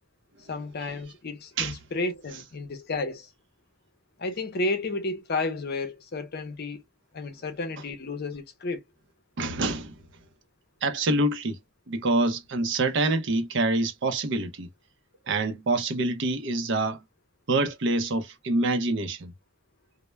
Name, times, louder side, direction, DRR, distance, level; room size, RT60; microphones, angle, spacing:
voice 1, 0.5-3.3 4.2-6.8 7.1-8.8, left 2 dB, 50° left, 0.6 m, -32 dB
voice 2, 9.4-9.9 10.8-11.6 11.9-14.7 15.3-17.0 17.5-19.3, right 2 dB, 65° right, 0.5 m, -26 dB
2.2 x 2.1 x 3.0 m
head